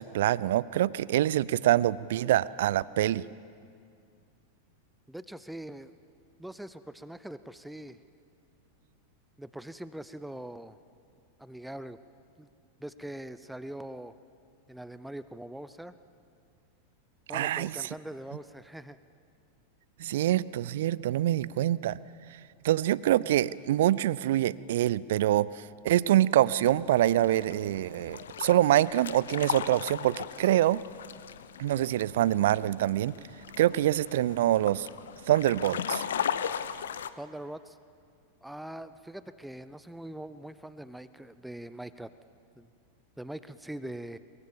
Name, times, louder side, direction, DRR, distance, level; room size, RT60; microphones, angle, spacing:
voice 1, 0.0-3.3 17.3-17.9 20.0-22.0 22.6-30.8 31.6-33.1 33.6-34.9 35.3-36.0, right 13 dB, 55° right, 21 dB, 0.5 m, -25 dB
voice 2, 5.1-5.9 6.4-8.0 9.4-10.8 11.4-12.0 12.4-12.5 12.8-14.1 14.7-16.0 17.3-19.0 37.2-37.8 38.4-42.1 42.6-42.7 43.2-44.2, right 1 dB, 5° right, 14 dB, 0.6 m, -42 dB
sound 1, 26.6-37.1, left 8 dB, 65° left, 0.8 m, -37 dB
23.0 x 22.5 x 7.2 m, 2.3 s
figure-of-eight pair, 90°, 0 cm